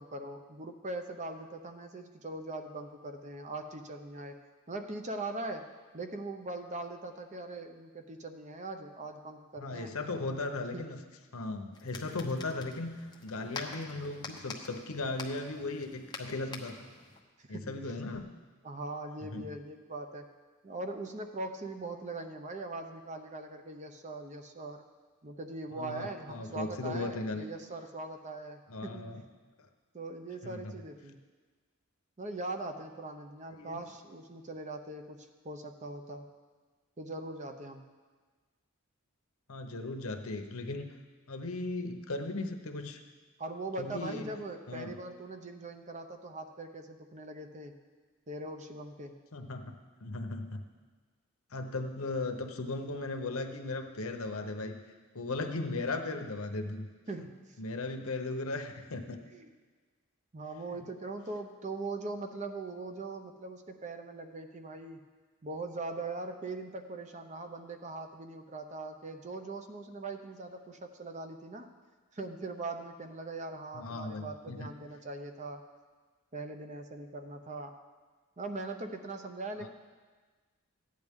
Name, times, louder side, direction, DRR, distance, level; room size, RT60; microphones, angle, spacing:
voice 1, 0.0-4.4 4.7-5.6 5.9-9.9 10.7-10.8 17.4-17.8 18.6-20.3 20.6-24.8 25.2-29.2 29.9-31.2 32.2-36.3 37.0-37.9 43.4-47.7 48.3-49.2 57.1-57.6 59.3-59.5 60.3-65.0 65.4-71.7 72.1-75.6 76.3-77.8 78.4-79.7, right 2 dB, 35° right, 6 dB, 0.7 m, -41 dB
voice 2, 9.6-11.0 11.3-16.8 17.5-18.3 19.3-19.6 25.7-27.5 28.7-29.2 30.4-30.7 33.5-33.8 39.5-40.9 41.3-43.0 43.8-44.2 44.7-45.0 49.3-50.6 51.5-54.8 55.1-56.9 57.6-59.2 73.7-74.7 79.6-79.7, left 2 dB, 75° left, 5 dB, 0.9 m, -37 dB
sound 1, 11.7-17.2, left 4 dB, 20° left, 0.9 m, -46 dB
14.5 x 9.6 x 3.6 m, 1.4 s
head